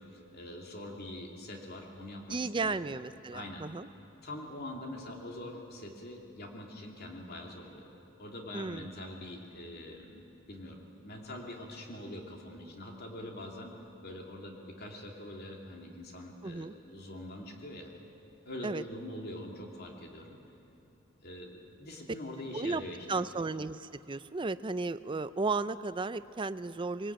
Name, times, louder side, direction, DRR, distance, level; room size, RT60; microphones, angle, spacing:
voice 1, 0.0-2.9 3.3-3.7 4.2-7.9 8.2-13.7 14.0-17.9 18.4-20.4 21.2-23.2, left 1 dB, 50° left, 1 dB, 3.0 m, -44 dB
voice 2, 2.3-3.9 8.5-8.9 16.4-16.7 18.6-18.8 22.5-22.8 23.1-27.1, right 3 dB, 25° right, 14 dB, 0.5 m, -34 dB
22.5 x 19.0 x 8.9 m, 2.9 s
head